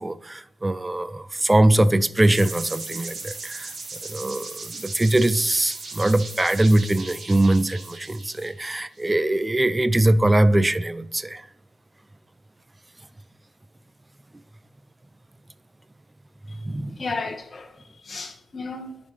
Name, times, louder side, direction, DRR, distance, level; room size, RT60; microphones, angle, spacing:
voice 1, 0.0-3.7 4.1-11.4 16.6-17.0, right 1 dB, 20° right, 0.4 m, -22 dB
sound 1, 2.3-9.0, right 3 dB, 55° right, 1.7 m, -37 dB
voice 2, 17.0-19.0, left 3 dB, 40° left, 1.2 m, -34 dB
11.0 x 3.9 x 3.2 m
cardioid pair, 95°, 0 cm